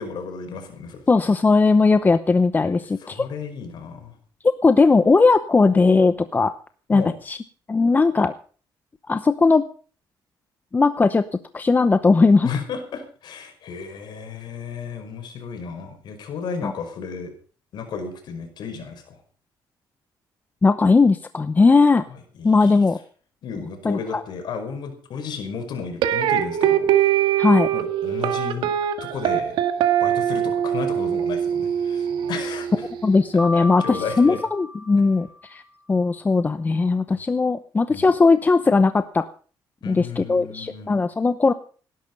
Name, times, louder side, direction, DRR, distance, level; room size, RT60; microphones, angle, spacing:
voice 1, 0.0-1.0 2.6-2.7 3.0-4.2 6.9-7.1 12.4-17.3 17.7-19.2 22.1-22.8 23.4-27.1 27.7-28.7 29.0-29.6 30.0-32.7 33.5-34.4 37.9-38.1 39.8-40.9, left 5 dB, 65° left, 6 dB, 5.2 m, -33 dB
voice 2, 1.1-3.3 4.6-6.5 6.9-7.4 7.7-8.3 9.1-9.6 10.7-11.3 11.5-12.5 16.6-16.7 20.6-22.0 22.4-23.0 23.8-24.2 27.4-27.7 33.0-35.6 35.9-39.3 39.9-41.5, left 4 dB, 20° left, 11 dB, 0.8 m, -18 dB
sound 1, 26.0-33.1, right 10 dB, 80° right, 1.9 m, -22 dB
Piano, 33.4-35.5, left 2 dB, 5° right, 5.3 m, -34 dB
18.5 x 11.5 x 5.4 m, 0.40 s
cardioid pair, 115°, 8 cm